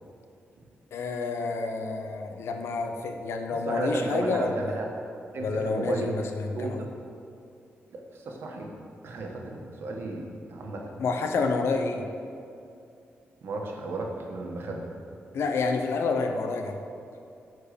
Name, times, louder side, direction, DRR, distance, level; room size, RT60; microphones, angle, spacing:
voice 1, 0.9-4.7 5.4-6.8 11.0-12.1 15.3-16.8, left 4 dB, 85° left, 4 dB, 0.9 m, -29 dB
voice 2, 3.7-4.9 5.3-6.2 6.5-6.9 7.9-8.7 9.0-10.9 13.4-14.9, right 2 dB, 65° right, 0 dB, 1.4 m, -34 dB
10.0 x 4.7 x 6.8 m, 2.5 s
wide cardioid pair, 170°, 4 cm